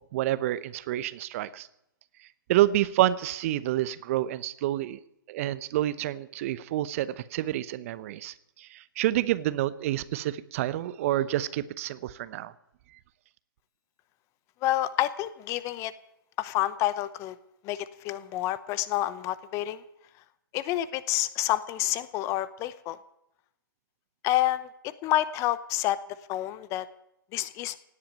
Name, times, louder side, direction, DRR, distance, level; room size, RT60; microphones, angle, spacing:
voice 1, 0.1-1.7 2.5-5.0 5.3-12.5, right 14 dB, 40° right, 16 dB, 0.8 m, -28 dB
voice 2, 14.6-15.9 16.4-17.3 17.6-19.8 20.5-23.0 24.2-24.7 25.0-26.0 26.3-26.8 27.3-27.7, left 14 dB, 25° left, 16 dB, 0.8 m, -28 dB
17.5 x 8.7 x 9.2 m, 0.82 s
figure-of-eight pair, 130°, 12 cm